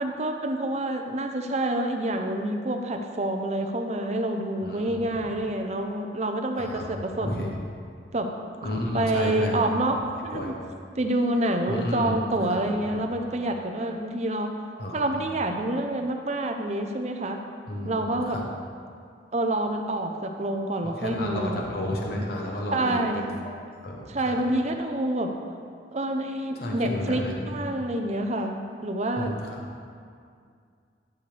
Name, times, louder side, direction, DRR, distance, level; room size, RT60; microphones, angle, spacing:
voice 1, 0.0-7.4 8.1-8.4 8.6-10.5 10.9-14.5 14.9-17.4 17.8-18.4 19.3-21.6 22.7-23.4 24.1-25.3 25.9-29.3, right 1 dB, 35° right, 4 dB, 0.6 m, -27 dB
voice 2, 4.6-5.0 6.6-7.6 8.6-9.6 10.3-10.6 11.7-12.2 12.5-12.6 12.9-13.0 14.8-15.1 17.7-18.4 20.8-23.5 23.8-24.4 26.5-27.4 29.2-29.6, left 1 dB, 55° left, -1 dB, 1.0 m, -32 dB
12.0 x 6.9 x 3.3 m, 2.2 s
head